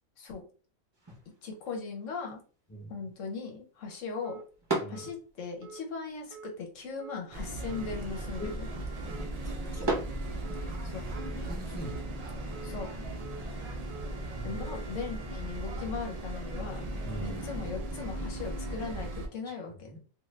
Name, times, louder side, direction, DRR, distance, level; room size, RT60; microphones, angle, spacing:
sound 1, 0.9-11.0, right 2 dB, 25° right, 0.8 m, -41 dB
voice 1, 1.4-2.4 2.9-4.4 4.9-8.7 10.8-11.0 12.6-12.9 14.4-16.8 17.2-20.0, left 5 dB, 70° left, 2 dB, 1.1 m, -39 dB
sound 2, 4.2-4.4 4.9-5.1 5.6-5.8 6.3-6.5 7.0-7.2 7.7-7.9 8.4-8.6 9.1-9.3 9.7-10.0 10.4-10.7 11.1-11.3 11.8-12.0 12.5-12.7 13.2-13.4 13.9-14.1 14.6-14.8, right 5 dB, 75° right, 0.9 m, -46 dB
voice 2, 4.8-5.1 8.4-8.6 9.4-9.9 11.5-12.0 14.3-14.6 17.0-17.4 19.9-20.0, right 1 dB, 15° left, -2 dB, 0.7 m, -42 dB
sound 3, 7.3-19.3, right 1 dB, 50° right, 0.4 m, -37 dB
2.6 x 2.5 x 3.2 m, 0.39 s
omnidirectional pair, 1.4 m